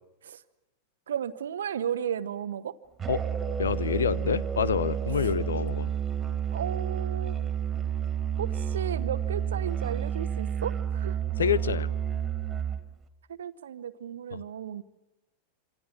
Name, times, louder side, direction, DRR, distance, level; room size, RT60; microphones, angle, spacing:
voice 1, 1.1-2.8 6.5-7.4 8.4-11.2 13.4-14.8, right 9 dB, 65° right, 1.2 m, -34 dB
Musical instrument, 3.0-12.9, right 8 dB, 20° right, 2.7 m, -30 dB
voice 2, 3.6-5.9 11.4-11.9 14.3-14.4, left 7 dB, 70° left, 0.9 m, -27 dB
27.0 x 26.5 x 6.2 m
figure-of-eight pair, 90°, 0 cm